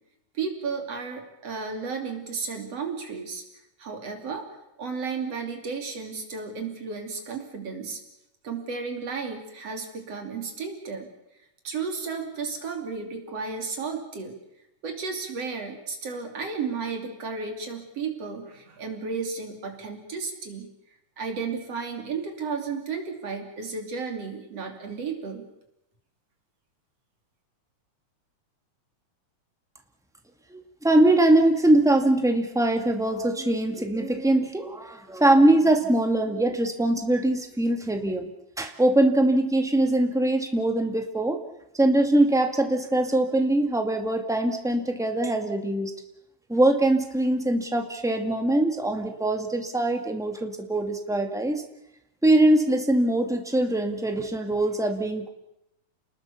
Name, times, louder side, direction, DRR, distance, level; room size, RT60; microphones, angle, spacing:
voice 1, 0.3-3.4 3.8-4.5 4.8-8.0 8.4-11.1 11.6-14.4 14.8-20.7 21.2-25.4, right 5 dB, 55° right, 4 dB, 3.9 m, -33 dB
voice 2, 30.5-38.3 38.6-41.4 41.7-45.9 46.5-51.6 52.2-55.3, right 1 dB, ahead, 4 dB, 1.1 m, -22 dB
29.5 x 20.0 x 7.0 m, 0.89 s
omnidirectional pair, 3.5 m